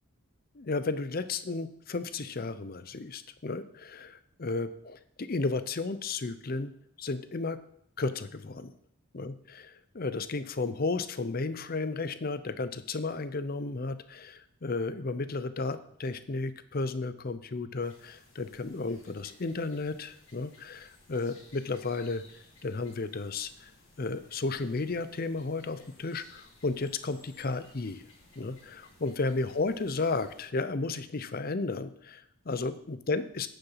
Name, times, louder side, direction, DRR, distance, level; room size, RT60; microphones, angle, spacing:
voice 1, 0.5-6.7 7.0-7.6 8.0-8.7 9.1-22.2 22.6-23.7 24.0-28.0 28.4-33.5, left 3 dB, 45° left, 13 dB, 0.6 m, -33 dB
sound 1, 17.8-30.5, left 2 dB, 60° left, 3.7 m, -58 dB
9.7 x 6.9 x 5.7 m, 0.70 s
head